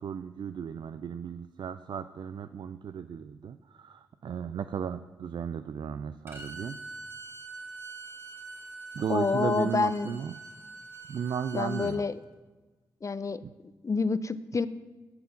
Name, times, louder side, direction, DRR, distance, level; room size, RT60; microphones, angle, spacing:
voice 1, 0.0-6.8 9.0-10.4 11.1-12.0 13.4-13.5, right 7 dB, 60° right, 12 dB, 0.3 m, -35 dB
Bowed string instrument, 6.3-12.0, right 3 dB, 25° right, 1.8 m, -44 dB
voice 2, 9.1-10.1 11.5-12.2 13.0-13.4 13.8-14.7, left 4 dB, 35° left, 14 dB, 0.5 m, -28 dB
9.5 x 4.3 x 7.0 m, 1.2 s
supercardioid pair, 40°, 9 cm